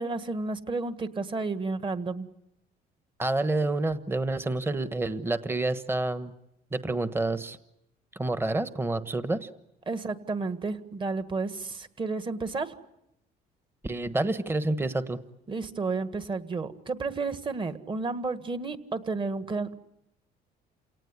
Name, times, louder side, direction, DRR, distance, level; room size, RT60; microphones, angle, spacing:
voice 1, 0.0-2.3 9.9-12.7 15.5-19.8, right 3 dB, 30° right, 10 dB, 1.8 m, -32 dB
voice 2, 3.2-6.3 6.7-7.6 8.1-9.5 13.8-15.2, right 2 dB, 15° right, 11 dB, 1.2 m, -28 dB
28.5 x 18.0 x 9.8 m, 0.86 s
cardioid pair, 110°, 17 cm